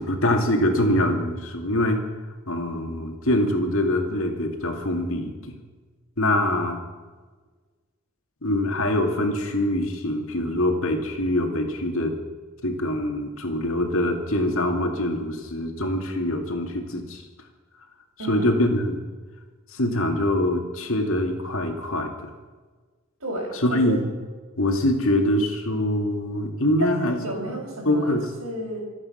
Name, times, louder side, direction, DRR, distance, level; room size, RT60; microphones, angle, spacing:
voice 1, 0.0-2.0 2.5-5.6 6.2-6.8 8.4-12.2 12.6-17.2 18.3-19.0 19.7-22.3 23.6-24.0 24.6-27.2 27.9-28.3, left 1 dB, 70° left, 4 dB, 2.4 m, -24 dB
voice 2, 18.2-18.6 23.2-24.0 26.8-28.8, right 1 dB, 85° right, -7 dB, 5.3 m, -31 dB
26.0 x 8.9 x 5.8 m, 1.4 s
head